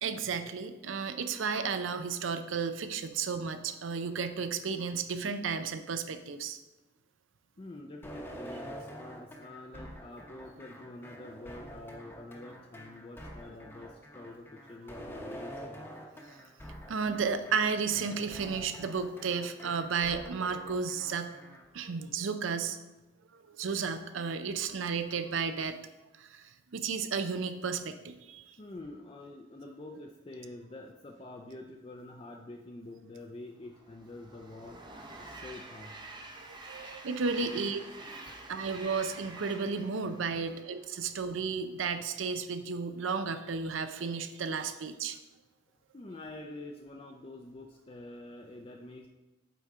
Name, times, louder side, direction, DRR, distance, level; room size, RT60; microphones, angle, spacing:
voice 1, 0.0-6.6 16.3-16.4 16.9-21.4 21.7-22.8 23.3-25.8 26.2-28.6 36.4-37.8 38.5-45.2, right 5 dB, 75° right, 10 dB, 0.5 m, -33 dB
voice 2, 7.6-15.9 28.6-34.8 35.2-36.0 37.4-37.5 38.3-38.4 40.3-40.7 45.9-49.1, left 2 dB, 25° left, 1 dB, 0.4 m, -47 dB
sound 1, 8.0-21.6, equal, 10° left, 0.8 m, -46 dB
Train, 33.6-41.1, right 2 dB, 25° right, 0.6 m, -48 dB
8.3 x 4.3 x 3.6 m, 1.1 s
head